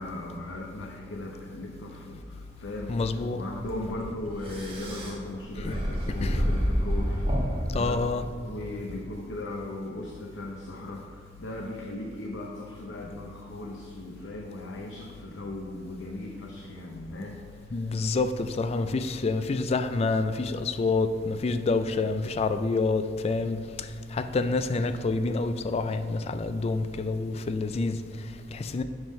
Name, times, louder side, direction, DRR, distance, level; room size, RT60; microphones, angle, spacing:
voice 1, 0.0-2.9 3.3-7.2 7.7-8.0 8.5-17.4, left 2 dB, 90° left, 0.7 m, -37 dB
voice 2, 2.9-3.4 5.5-5.8 6.2-6.4 7.7-8.3 17.7-28.8, left 3 dB, 35° left, 0.3 m, -28 dB
sound 1, 3.5-8.6, equal, 30° right, 1.2 m, -30 dB
7.9 x 3.6 x 5.5 m
head